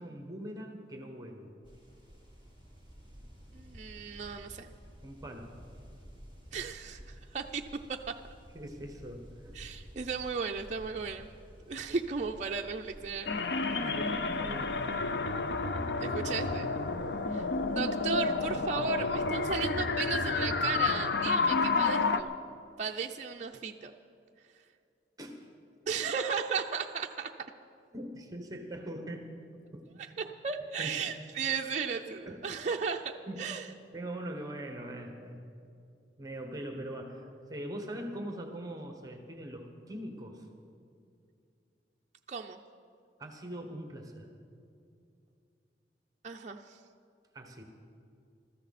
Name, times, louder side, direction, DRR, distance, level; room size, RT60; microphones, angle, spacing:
voice 1, 0.0-1.5 5.0-5.5 8.5-9.5 13.8-14.8 17.0-17.3 25.2-25.5 27.9-29.3 29.7-30.1 30.8-31.1 32.3-32.5 33.2-33.5 33.9-35.4 36.2-40.5 43.2-44.3 47.3-47.6, right 1 dB, 20° right, 4 dB, 1.3 m, -42 dB
sound 1, 1.6-19.8, equal, 30° left, 2.8 m, -52 dB
voice 2, 3.5-4.7 6.5-7.6 7.9-8.1 9.6-11.3 11.7-13.3 16.0-16.7 17.3-17.4 17.8-22.3 22.8-23.9 25.9-27.3 30.4-33.7 42.3-42.6 46.2-46.8, right 5 dB, 40° right, 2 dB, 0.5 m, -35 dB
sound 2, 13.3-22.2, left 4 dB, 70° left, 0.7 m, -30 dB
21.5 x 13.5 x 4.2 m, 2.5 s
head